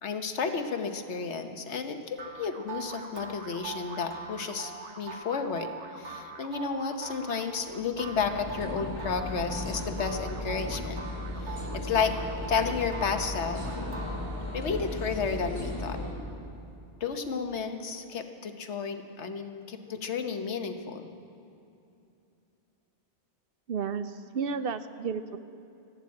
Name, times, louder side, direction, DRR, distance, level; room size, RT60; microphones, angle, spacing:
voice 1, 0.0-5.7 6.0-11.0 11.4-12.1 12.5-13.7 14.5-16.0 17.0-21.1, left 5 dB, 80° left, 7 dB, 1.3 m, -32 dB
sound 1, 2.2-14.7, right 4 dB, 80° right, 1.5 m, -43 dB
sound 2, 7.4-16.1, left 1 dB, 15° right, 3.9 m, -36 dB
voice 2, 23.7-25.4, right 6 dB, 60° right, 11 dB, 0.7 m, -32 dB
13.5 x 12.0 x 8.5 m, 2.7 s
omnidirectional pair, 1.2 m